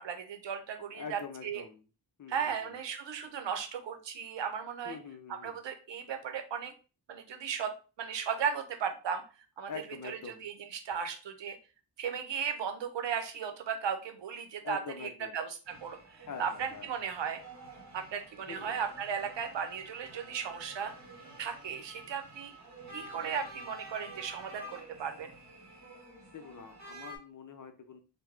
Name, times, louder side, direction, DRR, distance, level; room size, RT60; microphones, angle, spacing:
voice 1, 0.0-1.6 2.3-5.0 5.3-6.7 7.1-7.7 8.0-9.2 9.6-9.7 10.0-11.6 12.0-17.4 17.9-20.9 21.4-22.5 22.9-25.3, right 7 dB, 80° right, 7 dB, 0.7 m, -36 dB
voice 2, 0.9-1.8 2.2-2.8 4.8-5.6 9.7-10.4 14.6-15.4 16.3-16.9 18.5-18.8 26.3-28.0, left 5 dB, 45° left, 7 dB, 0.6 m, -44 dB
sound 1, 15.6-27.2, right 1 dB, 40° right, 1.3 m, -50 dB
3.5 x 2.2 x 3.2 m, 0.34 s
wide cardioid pair, 95°, 43 cm